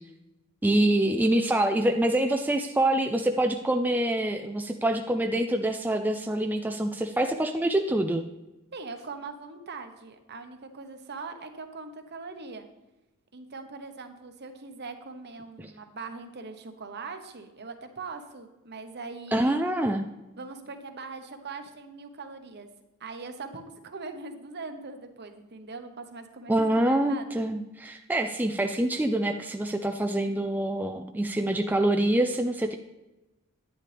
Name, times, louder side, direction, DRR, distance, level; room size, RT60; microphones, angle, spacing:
voice 1, 0.6-8.2 15.6-15.7 19.3-20.1 26.5-32.8, right 1 dB, 10° right, 5 dB, 0.4 m, -25 dB
voice 2, 8.7-12.7 13.3-19.6 20.4-22.7 23.0-27.3, right 4 dB, 50° right, 7 dB, 1.0 m, -41 dB
10.5 x 9.8 x 3.4 m, 1.0 s
head